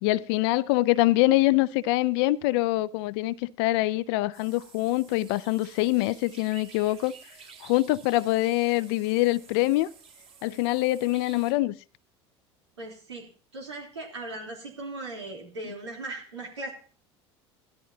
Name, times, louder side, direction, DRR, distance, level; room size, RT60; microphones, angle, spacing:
voice 1, 0.0-7.1 7.6-9.9 10.4-11.7, left 18 dB, 65° left, 0.5 m, -24 dB
sound 1, 4.3-11.5, right 6 dB, 45° right, 4.2 m, -51 dB
voice 2, 12.8-13.3 13.5-16.7, right 2 dB, 90° right, 3.6 m, -38 dB
16.5 x 12.5 x 2.8 m
hypercardioid pair, 70°, 14 cm